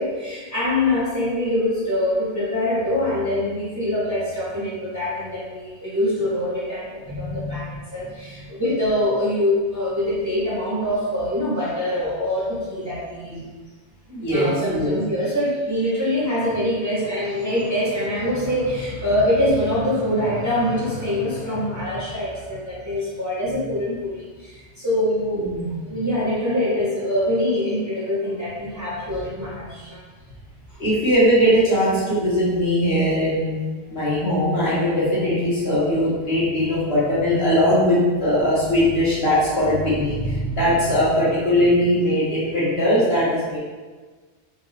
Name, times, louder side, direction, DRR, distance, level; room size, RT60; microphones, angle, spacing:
voice 1, 0.0-13.4 14.3-25.5 25.8-30.0, left 1 dB, 15° right, -9 dB, 1.0 m, -24 dB
voice 2, 7.1-7.6 14.1-15.0 25.3-25.7 30.8-33.6 33.9-43.6, equal, 65° left, -10 dB, 1.8 m, -20 dB
4.5 x 2.6 x 3.2 m, 1.4 s
omnidirectional pair, 1.1 m